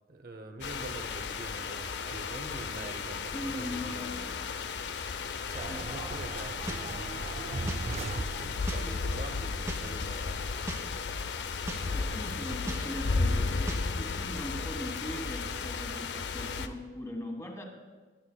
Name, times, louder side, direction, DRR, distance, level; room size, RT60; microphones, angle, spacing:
voice 1, 0.1-4.0 5.5-10.5, right 2 dB, 55° right, 7 dB, 0.8 m, -44 dB
sound 1, 0.6-16.7, left 4 dB, 75° left, 0.6 m, -34 dB
voice 2, 3.3-4.5 5.7-5.8 6.1-6.2 11.7-17.6, left 1 dB, 15° left, 2 dB, 1.6 m, -40 dB
sound 2, 5.5-8.9, right 2 dB, 40° right, 0.4 m, -38 dB
sound 3, 6.7-6.8 7.7-7.8 8.7-8.8 9.7-9.8 10.7-10.8 11.7-11.8 12.7-12.8 13.7-13.8, right 1 dB, 15° right, 1.3 m, -37 dB
23.0 x 10.5 x 2.3 m, 1.4 s
head